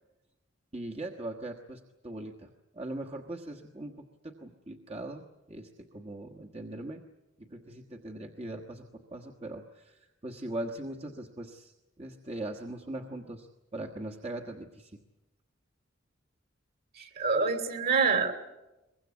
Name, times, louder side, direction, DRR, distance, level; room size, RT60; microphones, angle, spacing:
voice 1, 0.7-7.0 7.4-13.5 13.7-15.0, right 1 dB, 30° right, 1 dB, 1.4 m, -40 dB
voice 2, 17.0-18.3, right 4 dB, 50° right, 8 dB, 2.9 m, -26 dB
23.5 x 21.5 x 8.4 m, 0.99 s
head